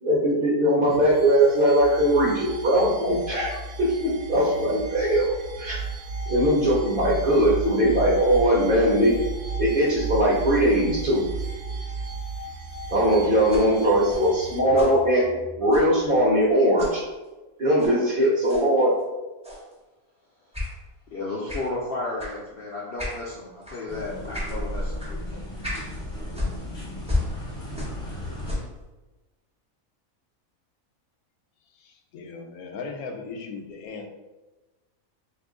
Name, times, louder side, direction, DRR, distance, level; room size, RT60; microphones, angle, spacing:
voice 1, 0.0-5.8 6.3-9.1 9.6-11.2 12.9-15.2 15.6-17.0 17.6-19.0, equal, 50° right, -5 dB, 0.7 m, -20 dB
sound 1, 0.9-14.6, right 4 dB, 70° right, 1.0 m, -34 dB
sound 2, 13.5-16.5 16.8-17.0 17.8-18.0 18.4-18.7 19.4-19.7 20.5-20.7 21.5-21.7 22.2-22.4 23.0-23.2 23.6-23.8 24.3-24.6 25.0-25.1 25.6-25.9 26.3-28.1 28.4-28.8, left 1 dB, 10° right, 0.4 m, -33 dB
voice 2, 21.1-25.0 25.3-25.4, left 3 dB, 65° left, -4 dB, 0.6 m, -32 dB
sound 3, 23.9-28.5, equal, 30° left, 0.7 m, -35 dB
voice 3, 31.7-34.1, left 4 dB, 85° left, 3 dB, 1.0 m, -37 dB
2.9 x 2.5 x 3.6 m, 1.1 s
omnidirectional pair, 1.5 m